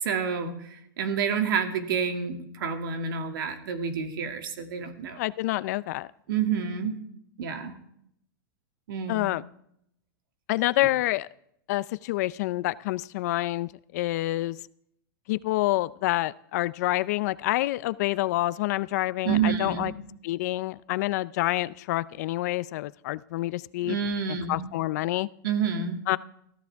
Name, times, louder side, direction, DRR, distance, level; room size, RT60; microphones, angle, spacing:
voice 1, 0.0-5.2 6.3-6.9 7.4-7.8 8.9-9.2 19.2-20.0 23.8-24.7 25.4-26.1, right 7 dB, 65° right, 5 dB, 2.5 m, -29 dB
voice 2, 5.2-6.1 9.1-9.4 10.5-11.3 11.7-14.6 15.3-19.9 20.2-24.0 24.5-25.3 26.1-26.2, left 17 dB, 45° left, 17 dB, 0.5 m, -27 dB
22.0 x 14.5 x 3.5 m, 0.71 s
supercardioid pair, 160°, 12 cm